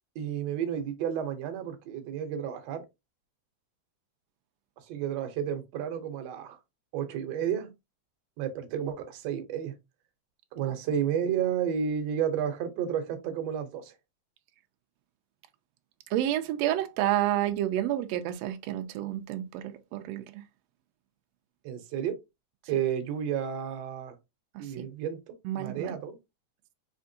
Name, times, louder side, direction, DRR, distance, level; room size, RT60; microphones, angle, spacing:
voice 1, 0.1-2.8 4.9-6.6 6.9-7.7 8.4-9.7 10.5-13.9 21.6-22.2 22.7-24.1 24.6-25.2 25.6-26.2, right 8 dB, 70° right, 1.8 m, -31 dB
voice 2, 16.1-20.4 24.5-24.7 25.4-25.9, right 12 dB, 85° right, 1.5 m, -29 dB
5.0 x 3.5 x 2.7 m
omnidirectional pair, 3.5 m